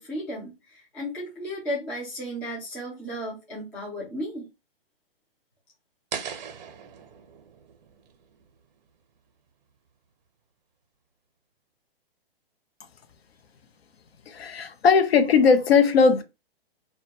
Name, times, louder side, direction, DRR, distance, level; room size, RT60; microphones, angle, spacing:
voice 1, 0.0-4.5, equal, 5° left, 0.3 m, -34 dB
sound 1, 6.1-9.1, right 7 dB, 45° right, 0.6 m, -40 dB
voice 2, 14.3-16.2, left 5 dB, 80° left, 0.6 m, -19 dB
2.1 x 2.1 x 2.8 m
hypercardioid pair, 140°, 30 cm